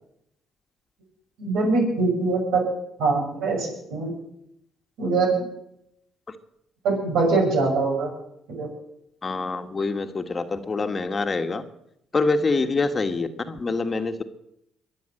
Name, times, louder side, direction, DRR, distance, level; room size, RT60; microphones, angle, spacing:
voice 1, 1.4-2.6 3.0-4.1 5.0-5.4 6.8-8.1 8.5-8.7, right 3 dB, 80° right, 0 dB, 6.4 m, -23 dB
voice 2, 9.2-11.6 12.1-14.2, left 3 dB, 35° left, 8 dB, 1.5 m, -25 dB
22.5 x 7.7 x 7.8 m, 0.79 s
supercardioid pair, 70°, 0 cm